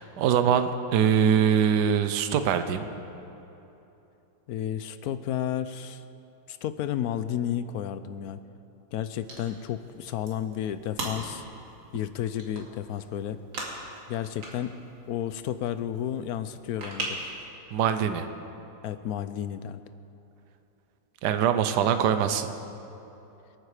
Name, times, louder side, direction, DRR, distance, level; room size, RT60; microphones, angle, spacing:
voice 1, 0.0-2.8 17.7-18.3 21.2-22.5, right 8 dB, 70° right, 9 dB, 1.3 m, -23 dB
voice 2, 4.5-6.0 6.5-8.4 8.9-11.4 11.9-13.4 14.1-14.8 15.1-17.2 18.8-19.8, left 10 dB, 70° left, 12 dB, 0.9 m, -32 dB
sound 1, 9.2-17.4, right 2 dB, 85° right, 3.1 m, -41 dB
25.5 x 9.1 x 4.9 m, 2.9 s
omnidirectional pair, 2.0 m